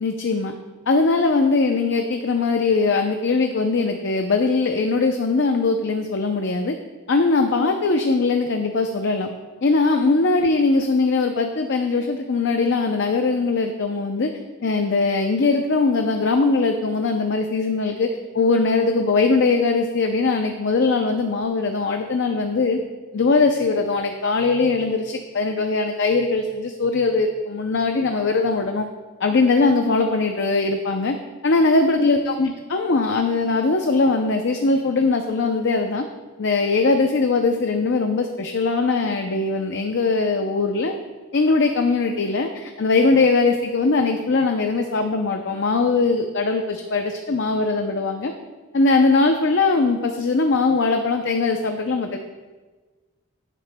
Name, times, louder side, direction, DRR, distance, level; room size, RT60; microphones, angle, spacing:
voice 1, 0.0-0.5 0.9-6.8 7.1-9.3 9.6-14.3 14.6-22.8 23.1-28.9 29.2-31.2 31.4-36.0 36.4-40.9 41.3-48.3 48.7-52.2, left 3 dB, 55° left, 5 dB, 0.5 m, -20 dB
14.5 x 7.5 x 2.2 m, 1.3 s
head